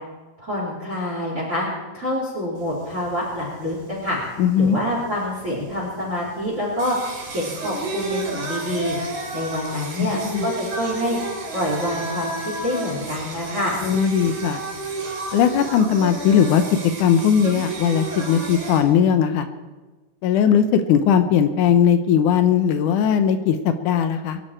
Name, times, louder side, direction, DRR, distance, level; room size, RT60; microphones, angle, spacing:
voice 1, 0.4-1.7 1.9-4.2 4.6-7.0 7.3-9.0 9.3-11.2 11.5-12.3 12.6-13.8, left 1 dB, 20° right, -6 dB, 3.8 m, -26 dB
Singing, 2.6-18.8, right 2 dB, 80° right, 4.7 m, -32 dB
voice 2, 4.4-4.8 10.0-10.5 13.8-14.6 15.3-16.6 17.0-19.5 20.2-24.4, left 8 dB, 75° left, 9 dB, 2.3 m, -18 dB
23.0 x 11.0 x 4.4 m, 1.2 s
omnidirectional pair, 3.9 m